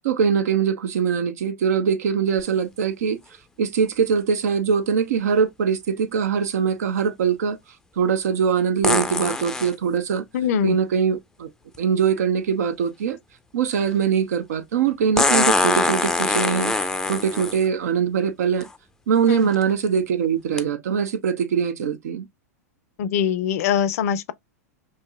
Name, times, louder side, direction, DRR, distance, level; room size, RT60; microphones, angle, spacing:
voice 1, 0.0-3.2 3.6-7.6 8.0-10.2 10.6-11.5 11.8-13.2 13.5-16.7 17.1-18.7 19.1-22.3, right 7 dB, 75° right, 0.7 m, -22 dB
sound 1, 2.4-2.5 8.8-9.7 11.7-11.8 15.2-17.6 18.6-18.7 19.3-19.6 20.6-20.7, left 2 dB, 5° left, 0.5 m, -22 dB
voice 2, 10.3-10.7 19.3-19.5 23.0-24.3, left 8 dB, 65° left, 0.5 m, -22 dB
4.5 x 2.8 x 2.3 m
hypercardioid pair, 105°, 9 cm